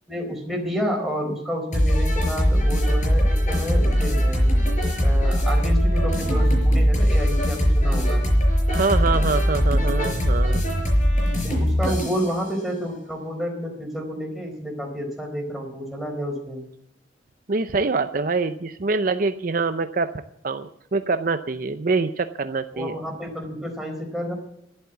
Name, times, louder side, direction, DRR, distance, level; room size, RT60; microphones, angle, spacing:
voice 1, 0.1-4.5 5.0-8.2 11.4-16.6 22.7-24.3, equal, ahead, 0 dB, 4.2 m, -30 dB
sound 1, 1.7-12.3, equal, 45° left, 5.5 m, -20 dB
voice 2, 8.7-10.6 11.9-12.0 17.5-20.1 20.4-23.0, right 3 dB, 50° right, 9 dB, 0.6 m, -25 dB
12.0 x 11.5 x 8.0 m, 0.75 s
head